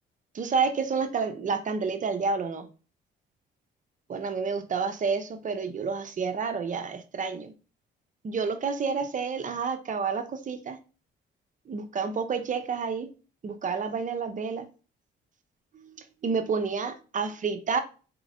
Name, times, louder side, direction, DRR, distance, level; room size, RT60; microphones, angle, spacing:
voice 1, 0.3-2.7 4.1-7.5 8.2-10.8 11.7-13.1 13.4-14.7 15.7-17.8, right 5 dB, 40° right, 0.6 m, -29 dB
4.1 x 3.0 x 2.6 m
cardioid pair, 90°, 20 cm